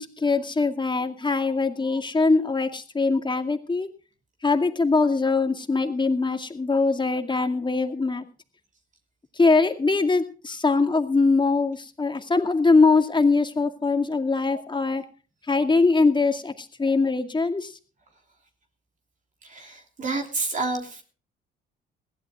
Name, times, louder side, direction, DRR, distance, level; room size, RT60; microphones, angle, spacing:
voice 1, 0.0-3.9 4.4-8.2 9.4-15.0 15.5-17.7, left 3 dB, 20° left, 6 dB, 2.2 m, -22 dB
voice 2, 19.4-21.0, right 3 dB, 40° right, 3 dB, 3.1 m, -29 dB
21.5 x 15.5 x 2.4 m, 0.36 s
supercardioid pair, 80°, 20 cm